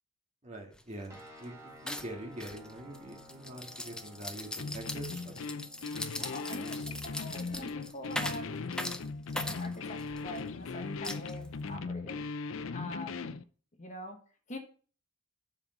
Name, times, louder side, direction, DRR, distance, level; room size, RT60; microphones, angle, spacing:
voice 1, 0.4-5.6, right 1 dB, 35° right, 0 dB, 1.9 m, -44 dB
sound 1, 0.7-0.8 1.1-1.4 1.9-10.4 11.0-11.7, left 1 dB, 5° left, 0.5 m, -40 dB
sound 2, 1.1-12.3, left 1 dB, 15° right, 1.6 m, -57 dB
sound 3, 4.6-13.4, left 4 dB, 70° left, 0.5 m, -39 dB
voice 2, 6.2-8.5 9.3-12.2 12.7-13.2 13.8-14.2 14.5-14.6, left 1 dB, 35° left, 3 dB, 1.3 m, -44 dB
7.3 x 5.3 x 5.4 m, 0.41 s
head